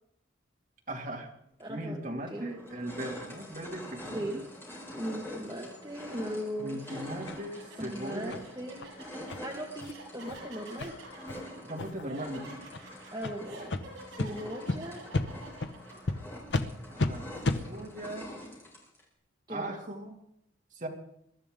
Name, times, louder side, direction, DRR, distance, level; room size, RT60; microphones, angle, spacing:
voice 1, 0.9-1.3 1.7-4.4 6.6-8.4 11.6-12.5 16.9-18.4 19.5-20.2 20.7-20.9, right 1 dB, 40° right, 0 dB, 2.5 m, -39 dB
sound 1, 1.6-1.7 2.2-19.0, left 1 dB, 10° left, 4.0 m, -46 dB
voice 2, 1.6-2.4 4.1-4.4 4.9-6.8 7.8-8.9 9.4-10.9 13.1-13.7 14.1-15.1 19.5-19.7, equal, 20° right, -1 dB, 1.6 m, -38 dB
sound 2, 6.1-6.3 6.8-16.1, right 2 dB, 80° right, 7.7 m, -49 dB
sound 3, 7.3-7.4 7.8-7.9 8.3-8.4 8.8-8.9 9.3-9.4 9.8-9.9 10.3-10.4 10.8-10.9 11.3-11.4 11.8-12.1 12.7-12.8 13.2-13.3 13.7-13.8 14.2-14.3 14.7-14.8 15.1-15.3 15.6-15.7 16.1-16.2 16.5-16.7 17.0-17.1 17.4-17.6, left 2 dB, 65° left, 0.9 m, -31 dB
22.0 x 12.5 x 3.8 m, 0.73 s
head